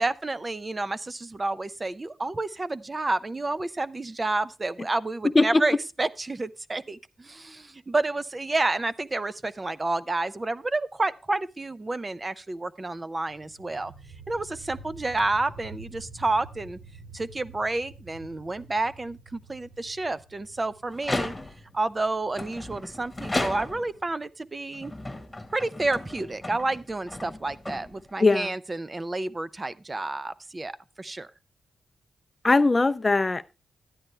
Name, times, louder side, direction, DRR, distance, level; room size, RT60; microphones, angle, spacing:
voice 1, 0.0-13.9 14.3-16.8 17.1-21.3 21.7-24.9 25.5-31.3, right 2 dB, 30° right, 0.5 m, -30 dB
sound 1, 13.3-24.9, right 2 dB, 80° right, 4.5 m, -48 dB
sound 2, 20.9-21.8 22.3-24.0 24.7-28.3, left 2 dB, 10° left, 1.5 m, -34 dB
voice 2, 28.2-28.5 32.4-33.5, left 3 dB, 30° left, 0.5 m, -20 dB
12.5 x 10.0 x 3.3 m
cardioid pair, 85°, 0 cm